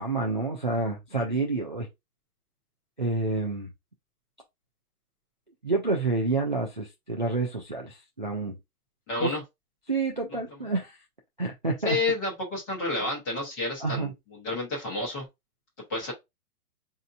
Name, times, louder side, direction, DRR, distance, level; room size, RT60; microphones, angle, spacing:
voice 1, 0.0-1.9 3.0-3.7 5.6-8.6 9.2-9.3 9.9-11.0 11.4-12.0 13.8-14.1, right 3 dB, 35° right, 0.4 m, -28 dB
voice 2, 9.1-9.4 10.3-10.6 11.8-15.3 15.9-16.1, left 2 dB, 10° left, 1.0 m, -30 dB
5.1 x 2.7 x 2.5 m
hypercardioid pair, 170°, 46 cm